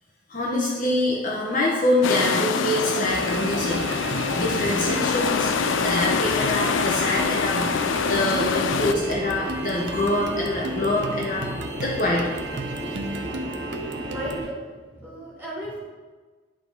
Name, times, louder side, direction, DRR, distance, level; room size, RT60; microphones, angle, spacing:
voice 1, 0.3-4.0 4.3-11.5 11.8-12.4, left 1 dB, 40° left, -3 dB, 1.0 m, -25 dB
sound 1, 2.0-8.9, left 6 dB, 65° left, 0.4 m, -25 dB
sound 2, 2.2-14.5, right 3 dB, 55° right, 0.6 m, -35 dB
sound 3, 3.0-14.4, right 1 dB, 35° right, 2.0 m, -34 dB
voice 2, 14.1-15.8, right 1 dB, 10° right, -9 dB, 2.5 m, -35 dB
10.5 x 4.1 x 4.6 m, 1.4 s
head